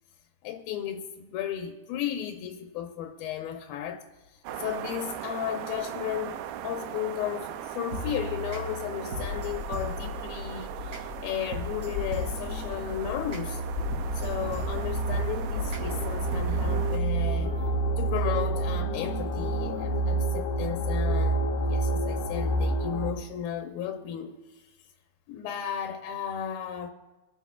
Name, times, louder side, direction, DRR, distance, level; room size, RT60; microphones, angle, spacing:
voice 1, 0.4-6.4 6.6-13.6 14.1-17.5 18.0-24.7 25.3-26.9, left 9 dB, 90° left, 2.7 m, -34 dB
sound 1, 4.4-17.0, right 11 dB, 90° right, 2.5 m, -39 dB
sound 2, 7.9-20.1, equal, 30° right, 2.4 m, -39 dB
sound 3, 9.4-23.1, right 2 dB, 70° left, 2.2 m, -29 dB
25.0 x 10.0 x 2.4 m
omnidirectional pair, 4.1 m